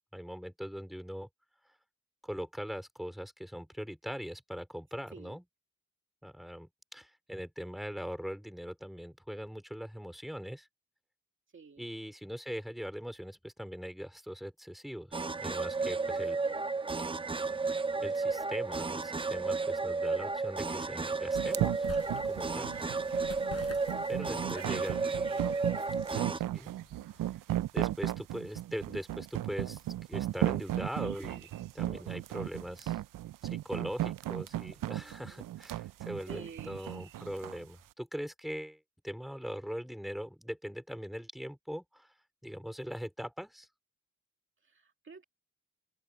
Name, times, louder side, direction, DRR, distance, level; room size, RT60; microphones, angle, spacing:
voice 1, 0.1-1.3 2.2-5.4 6.2-10.7 11.8-16.4 18.0-21.9 22.2-22.7 24.1-25.0 26.3-26.7 27.7-29.8 30.1-33.0 33.4-42.1 42.4-43.7, equal, ahead, 3.7 m, -41 dB
voice 2, 11.5-11.9 15.9-16.9 22.8-23.0 24.5-25.1 27.5-27.7 31.8-32.1 34.9-35.5 36.3-36.7 44.6-45.3, right 5 dB, 40° right, 2.2 m, -52 dB
sound 1, 15.1-26.4, right 4 dB, 15° right, 0.6 m, -33 dB
sound 2, 18.2-27.3, left 6 dB, 50° left, 4.9 m, -53 dB
sound 3, 21.3-37.6, right 14 dB, 85° right, 0.5 m, -35 dB
open air
wide cardioid pair, 145°, 31 cm